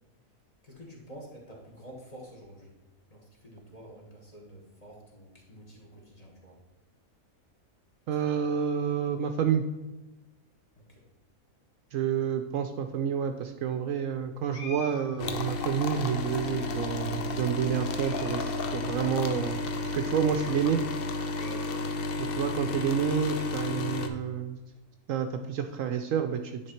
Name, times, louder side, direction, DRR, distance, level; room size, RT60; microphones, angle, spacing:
voice 1, 0.6-2.7 3.1-6.6 10.9-11.0 21.4-21.9, right 1 dB, 25° left, -2 dB, 1.5 m, -48 dB
voice 2, 8.1-9.6 11.9-19.6 19.9-20.8 22.2-24.6 25.1-26.6, right 8 dB, 70° right, 7 dB, 0.9 m, -29 dB
sound 1, 14.5-15.9 16.6-17.2 17.7-18.4 18.7-18.8 19.5-19.6 20.0-20.1 21.1-21.9 22.4-23.3, left 3 dB, 85° left, 1.7 m, -48 dB
sound 2, 15.2-24.1, left 2 dB, 55° left, 0.7 m, -32 dB
9.8 x 3.5 x 4.3 m, 1.1 s
omnidirectional pair, 1.5 m